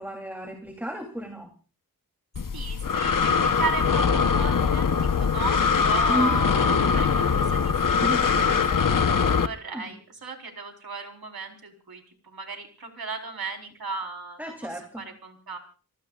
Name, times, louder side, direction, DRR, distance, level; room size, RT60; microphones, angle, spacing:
voice 1, 0.0-1.5 6.1-6.4 8.0-8.9 9.7-9.9 14.4-15.0, equal, 5° right, 3 dB, 3.1 m, -33 dB
Breathing, 2.4-9.5, left 6 dB, 60° left, 1.1 m, -22 dB
voice 2, 2.5-8.9 9.4-15.6, right 4 dB, 80° right, 3 dB, 4.2 m, -36 dB
28.5 x 19.0 x 2.5 m, 0.37 s
wide cardioid pair, 90°, 36 cm